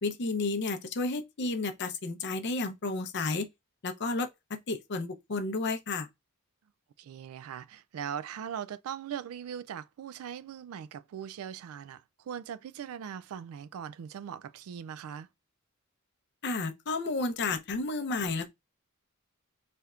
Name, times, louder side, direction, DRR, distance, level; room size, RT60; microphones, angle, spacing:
voice 1, 0.0-3.5 3.8-6.1 16.4-18.5, left 3 dB, 50° left, 0.6 m, -32 dB
voice 2, 7.0-15.3, right 8 dB, 70° right, 0.3 m, -40 dB
4.2 x 3.4 x 2.4 m
head